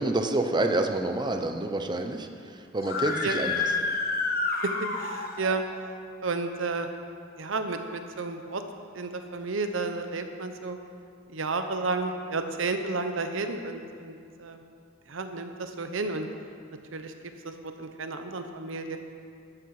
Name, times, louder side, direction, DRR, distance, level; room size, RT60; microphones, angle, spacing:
voice 1, 0.0-3.7, right 2 dB, 20° right, 6 dB, 0.7 m, -28 dB
Screaming, 2.8-5.6, left 3 dB, 50° left, 1.2 m, -29 dB
voice 2, 4.8-5.6 6.2-6.9 7.4-8.6 8.9-10.8 11.3-14.6 15.1-16.3 16.9-17.1 17.4-19.0, right 3 dB, 70° right, 7 dB, 0.9 m, -32 dB
12.5 x 12.0 x 4.9 m, 2.3 s
head